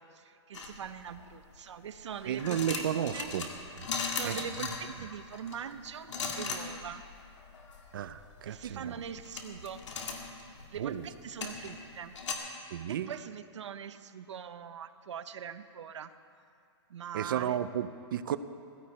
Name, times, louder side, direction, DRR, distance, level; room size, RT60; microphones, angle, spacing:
voice 1, 0.0-2.9 3.1-3.3 4.1-7.1 8.4-9.8 10.7-12.1 12.9-16.1 16.9-17.6, right 8 dB, 80° right, 11 dB, 0.9 m, -42 dB
sound 1, 0.5-1.3 2.0-12.3, left 4 dB, 80° left, 2.2 m, -39 dB
voice 2, 2.3-3.5 3.8-3.9 4.2-4.4 7.9-8.9 10.8-11.1 12.7-13.1 17.1-18.4, right 10 dB, 50° right, 13 dB, 0.6 m, -33 dB
16.5 x 15.5 x 4.3 m, 2.4 s
hypercardioid pair, 170°, 15 cm